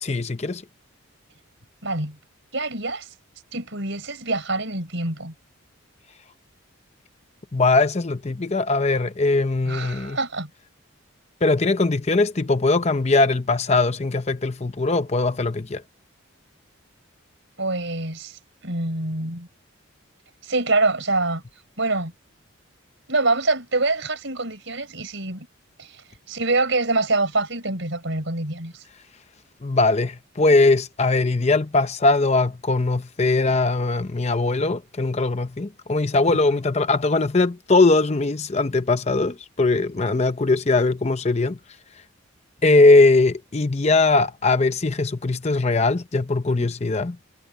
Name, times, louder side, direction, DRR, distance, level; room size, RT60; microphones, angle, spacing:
voice 1, 0.0-0.6 7.5-10.2 11.4-15.8 29.6-41.6 42.6-47.2, left 3 dB, 30° left, 0.6 m, -20 dB
voice 2, 1.8-2.2 2.5-3.1 3.5-5.3 9.7-10.5 17.6-19.5 20.4-21.4 21.8-22.1 23.1-25.5 25.8-28.8 46.6-46.7, right 2 dB, 60° right, 5.3 m, -25 dB
head